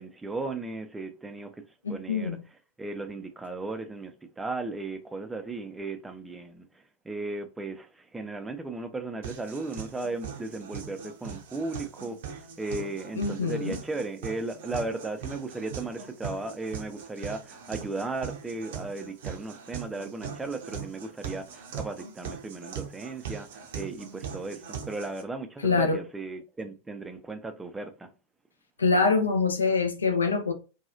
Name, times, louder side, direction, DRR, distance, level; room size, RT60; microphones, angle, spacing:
voice 1, 0.0-1.6 1.9-2.4 2.8-6.7 7.0-28.1, right 3 dB, 10° right, 0.4 m, -36 dB
voice 2, 1.8-2.4 13.2-13.8 25.6-26.0 28.8-30.5, left 4 dB, 75° left, 0.5 m, -25 dB
sound 1, 9.2-25.2, right 7 dB, 55° right, 0.6 m, -41 dB
2.8 x 2.3 x 2.4 m
figure-of-eight pair, 90°, 0 cm